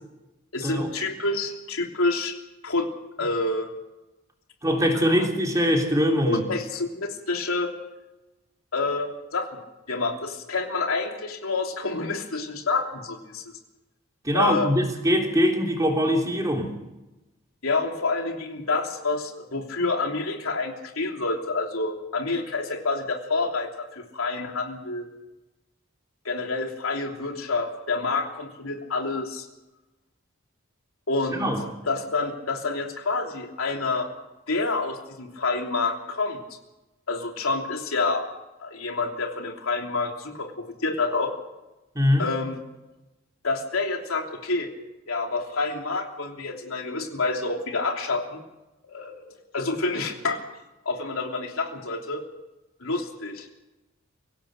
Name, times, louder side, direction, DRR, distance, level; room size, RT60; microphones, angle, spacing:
voice 1, 0.5-2.4 2.6-2.9 3.2-3.7 4.9-5.0 6.3-7.7 8.7-9.6 9.9-13.4 14.3-14.7 17.6-25.1 26.2-29.5 31.1-31.5 31.9-34.1 34.5-36.4 37.1-38.3 38.6-41.3 42.2-42.6 43.4-44.7 45.1-48.4 48.8-49.3 49.5-50.4 50.8-52.2 52.8-53.5, left 3 dB, 85° left, 2 dB, 3.2 m, -28 dB
voice 2, 4.6-6.4 14.2-16.7 31.3-31.6 41.9-42.3, equal, 15° right, 1 dB, 3.2 m, -22 dB
24.5 x 17.0 x 6.6 m, 1.0 s
head